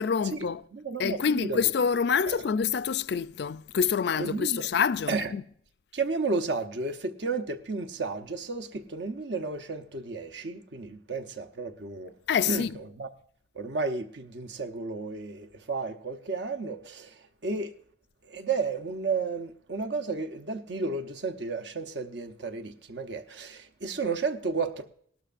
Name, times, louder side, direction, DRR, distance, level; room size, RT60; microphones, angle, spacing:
voice 1, 0.0-0.6 1.0-5.5 12.3-12.8, left 6 dB, 55° left, 0.4 m, -27 dB
voice 2, 0.7-1.6 2.3-2.4 4.2-4.7 5.1-5.3 5.9-12.1 12.4-13.1 13.5-17.7 18.2-24.8, right 4 dB, 65° right, 0.8 m, -32 dB
18.5 x 12.5 x 2.5 m
head